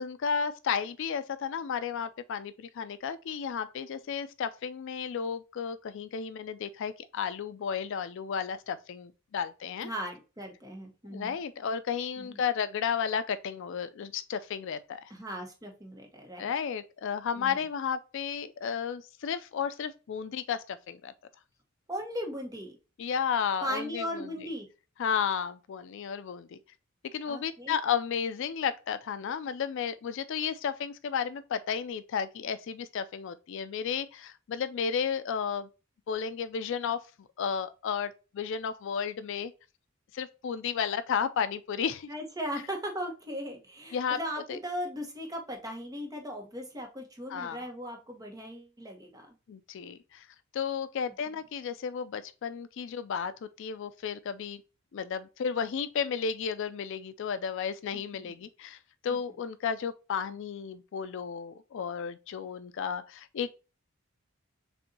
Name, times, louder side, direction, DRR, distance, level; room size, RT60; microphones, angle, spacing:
voice 1, 0.0-9.9 11.1-15.1 16.4-21.1 23.0-24.3 25.0-26.6 27.1-35.7 36.1-39.5 40.1-42.1 43.9-44.2 44.5-44.6 47.3-47.6 49.5-50.3 50.5-54.6 54.9-58.8 59.0-63.5, left 7 dB, 65° left, 0.4 m, -33 dB
voice 2, 9.8-11.4 12.2-12.4 15.1-16.5 17.3-17.6 21.9-22.8 23.6-24.6 27.3-27.8 42.1-49.3 51.3-51.4 57.9-58.4 59.1-59.2, equal, 20° right, 1.2 m, -38 dB
6.5 x 2.6 x 2.7 m
head